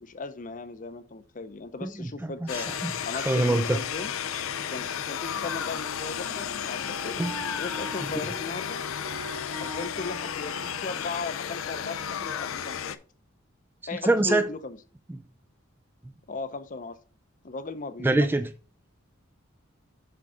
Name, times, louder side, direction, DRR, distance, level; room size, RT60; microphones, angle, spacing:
voice 1, 0.0-2.7 3.0-4.1 4.7-7.2 7.6-8.8 9.6-13.0 13.9-14.8 16.3-17.0 17.4-18.3, left 3 dB, 40° left, 0.6 m, -37 dB
voice 2, 1.8-3.8 7.2-7.4 14.1-14.5 18.0-18.5, right 2 dB, 10° right, 0.3 m, -25 dB
sound 1, 2.5-13.0, left 8 dB, 85° left, 0.5 m, -33 dB
Wind instrument woodwind instrument, 5.3-12.4, right 1 dB, 85° right, 3.1 m, -43 dB
7.8 x 3.7 x 5.0 m
head